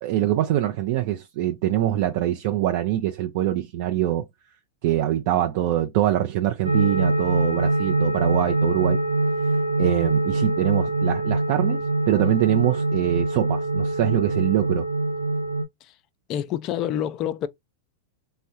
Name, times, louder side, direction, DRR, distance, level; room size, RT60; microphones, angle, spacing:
voice 1, 0.0-4.3 4.8-9.0 9.8-14.9, right 13 dB, 55° right, 0.5 m, -24 dB
sound 1, 6.6-15.6, right 2 dB, 85° right, 0.8 m, -23 dB
voice 2, 16.3-17.5, left 10 dB, 35° left, 0.4 m, -27 dB
3.5 x 2.1 x 2.7 m
hypercardioid pair, 135°, 0 cm